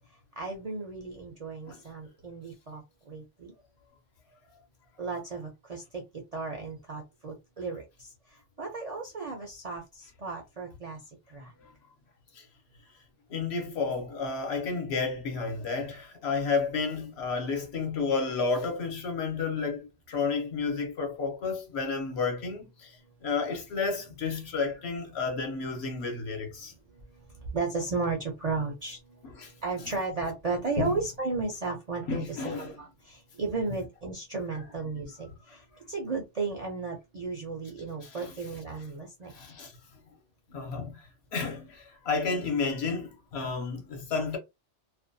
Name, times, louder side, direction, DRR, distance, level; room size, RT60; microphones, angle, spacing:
voice 1, 0.4-3.5 5.0-8.1 8.6-11.0 11.3-11.5 27.3-29.2 29.6-35.6 35.9-39.3, right 4 dB, 50° right, 0.5 m, -34 dB
voice 2, 13.3-23.0 23.2-26.7 29.4-29.5 29.8-29.9 30.8-30.9 32.1-32.7 35.5-35.6 38.0-38.3 39.3-39.7 40.5-44.4, left 4 dB, 65° left, 1.0 m, -31 dB
2.5 x 2.2 x 2.5 m
omnidirectional pair, 1.2 m